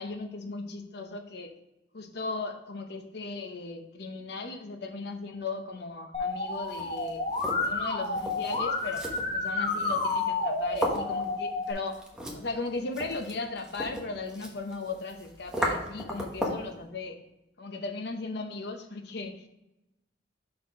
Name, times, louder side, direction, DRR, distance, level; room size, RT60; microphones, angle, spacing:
voice 1, 0.0-1.6 1.9-7.3 7.6-9.1 9.3-12.0 12.3-17.2 17.6-19.5, left 3 dB, 60° left, 6 dB, 0.8 m, -37 dB
Musical instrument, 6.1-11.7, left 3 dB, 30° left, 1.0 m, -30 dB
sound 1, 6.5-16.7, equal, 5° right, 1.0 m, -37 dB
5.8 x 4.4 x 4.6 m, 0.93 s
head